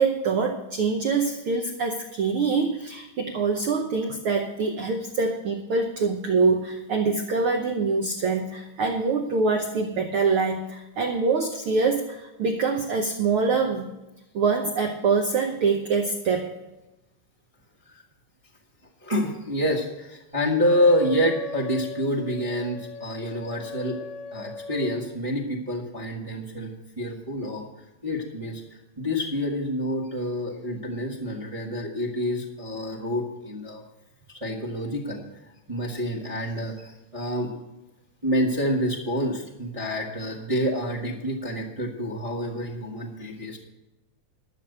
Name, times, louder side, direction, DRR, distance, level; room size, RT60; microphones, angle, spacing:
voice 1, 0.0-13.9 14.3-16.5, right 4 dB, 75° right, 4 dB, 1.2 m, -24 dB
voice 2, 19.0-24.0 24.3-27.6 28.0-28.6 29.0-33.8 34.3-37.5 38.2-43.6, equal, 35° right, -3 dB, 0.5 m, -27 dB
Wind instrument woodwind instrument, 20.6-25.1, left 4 dB, 55° left, 1.6 m, -39 dB
12.0 x 6.9 x 7.9 m, 0.98 s
omnidirectional pair, 3.6 m